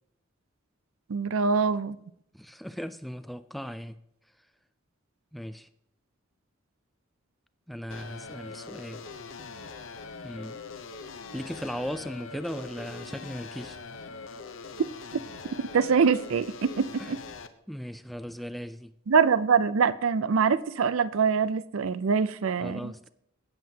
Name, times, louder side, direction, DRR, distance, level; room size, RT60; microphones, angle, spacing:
voice 1, 1.1-2.0 15.7-17.2 19.1-22.9, right 5 dB, 80° right, 0.5 m, -24 dB
voice 2, 2.3-4.0 5.3-5.7 7.7-9.0 10.2-10.6 11.3-13.8 17.0-17.1 17.7-18.9 22.6-23.1, equal, ahead, 0.3 m, -37 dB
sound 1, 7.9-17.5, left 4 dB, 70° left, 0.7 m, -42 dB
16.5 x 7.6 x 2.8 m
head